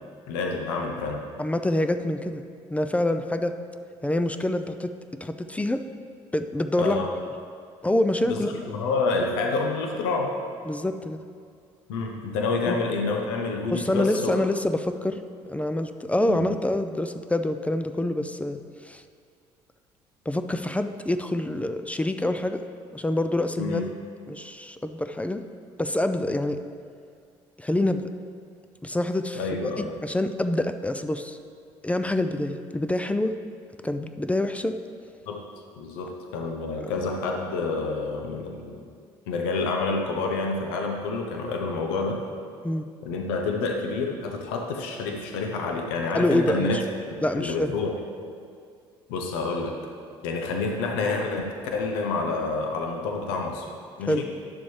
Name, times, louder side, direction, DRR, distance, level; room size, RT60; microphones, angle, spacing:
voice 1, 0.3-1.2 6.8-7.1 8.3-10.3 11.9-14.3 16.3-16.4 23.6-23.9 29.3-30.0 35.3-35.4 35.8-38.8 39.3-42.2 43.0-46.8 47.1-47.9 49.1-49.8 50.2-53.7 54.0-54.3, left 3 dB, 85° left, 2 dB, 0.8 m, -28 dB
voice 2, 1.4-2.4 2.7-3.5 4.0-4.9 5.2-5.8 6.3-7.1 7.8-8.5 10.7-11.2 12.7-12.8 13.7-15.2 15.5-19.0 20.3-22.6 22.9-23.9 24.3-25.4 25.8-26.6 27.6-28.0 28.8-29.4 30.0-31.4 31.8-33.4 33.8-34.8 36.8-36.9 42.6-42.9 46.1-46.8 47.2-47.8 54.1-54.3, left 1 dB, 10° left, 9 dB, 0.4 m, -26 dB
10.5 x 6.9 x 3.3 m, 2.2 s
supercardioid pair, 70°, 12 cm